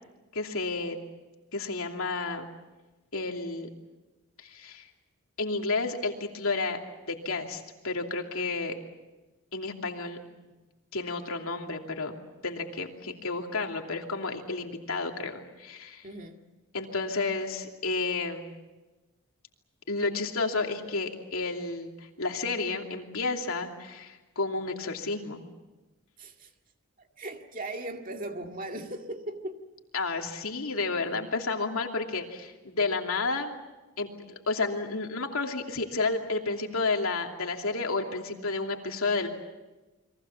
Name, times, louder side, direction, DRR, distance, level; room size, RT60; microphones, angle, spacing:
voice 1, 0.3-1.0 1.5-2.5 3.1-3.7 4.4-4.9 5.4-6.8 7.1-8.8 9.5-10.2 10.9-12.2 12.4-16.1 16.7-18.5 19.9-25.4 29.9-33.5 34.0-34.1 34.5-39.3, left 3 dB, 75° left, 3 dB, 2.8 m, -31 dB
voice 2, 16.0-16.4 26.2-26.5 27.0-29.6, right 1 dB, 40° right, 4 dB, 2.1 m, -38 dB
30.0 x 23.0 x 7.2 m, 1.1 s
head